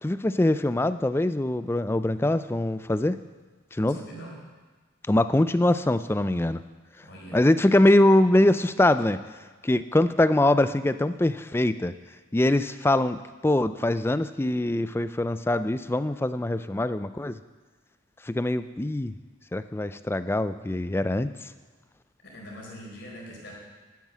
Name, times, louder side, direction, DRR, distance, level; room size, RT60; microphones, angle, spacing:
voice 1, 0.0-3.2 3.7-4.0 5.1-6.6 7.3-9.2 9.6-11.9 12.3-13.2 13.4-17.4 18.2-19.1 19.5-21.5, left 1 dB, 10° left, 12 dB, 0.3 m, -23 dB
voice 2, 3.9-4.4 7.0-7.4 22.2-23.5, equal, 50° left, -3 dB, 4.3 m, -42 dB
12.0 x 9.6 x 7.3 m, 1.3 s
head